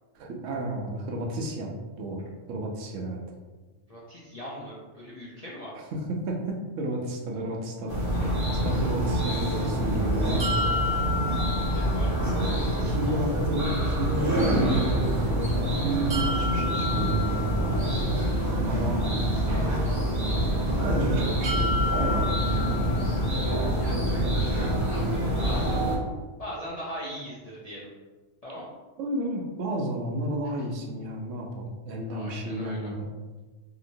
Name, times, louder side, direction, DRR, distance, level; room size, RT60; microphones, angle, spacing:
voice 1, 0.1-3.2 5.9-8.3 8.5-10.6 12.3-17.9 18.6-19.8 20.8-23.2 29.0-33.1, right 1 dB, 75° right, 0 dB, 0.9 m, -32 dB
voice 2, 3.9-5.7 8.1-8.4 11.3-13.2 23.7-25.8 26.4-27.9 28.4-28.7 30.4-30.7 32.1-32.9, equal, 55° left, -7 dB, 0.4 m, -41 dB
sound 1, 7.9-26.0, right 1 dB, 20° right, 0.5 m, -26 dB
sound 2, 10.4-12.4 16.1-18.2 21.4-23.5, left 3 dB, 50° right, 1.0 m, -31 dB
2.8 x 2.8 x 2.6 m, 1.3 s
omnidirectional pair, 1.3 m